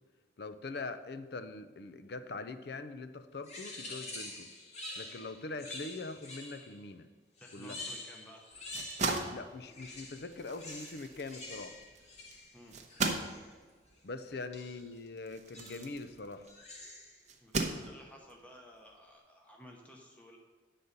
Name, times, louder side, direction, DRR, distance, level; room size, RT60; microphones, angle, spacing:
voice 1, 0.4-4.5 5.0-7.1 7.5-7.8 9.2-11.8 14.0-16.5, left 3 dB, 60° left, 10 dB, 0.5 m, -43 dB
sound 1, 3.4-6.8 7.4-9.4 9.7-13.5 14.5-14.9 15.5-16.0 16.4-17.2, left 2 dB, 35° left, 1.2 m, -47 dB
voice 2, 7.4-8.4 12.5-12.8 14.3-14.4 17.4-20.4, equal, 10° left, 0 dB, 0.8 m, -54 dB
sound 2, 8.5-16.6 17.3-18.3, right 3 dB, 40° right, 0.7 m, -38 dB
9.4 x 4.1 x 6.5 m, 1.5 s
head